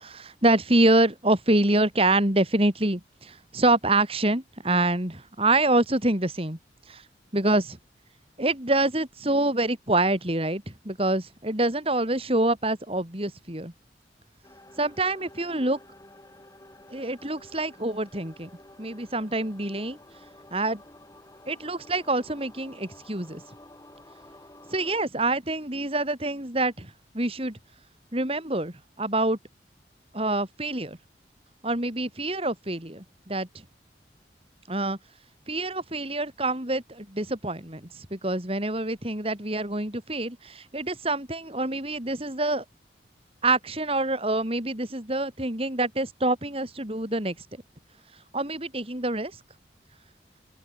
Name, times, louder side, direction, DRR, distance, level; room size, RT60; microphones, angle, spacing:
voice 1, 0.0-6.6 6.9-7.0 7.3-7.8 8.4-13.7 14.8-15.8 16.9-18.5 18.8-20.0 20.5-20.8 21.5-23.4 24.7-27.6 28.1-29.4 30.1-31.0 31.6-33.5 34.7-35.0 35.5-42.6 43.4-47.4 48.3-49.3, right 2 dB, 35° right, 4.4 m, -26 dB
sound 1, 14.4-25.0, left 1 dB, 20° left, 6.8 m, -51 dB
open air
head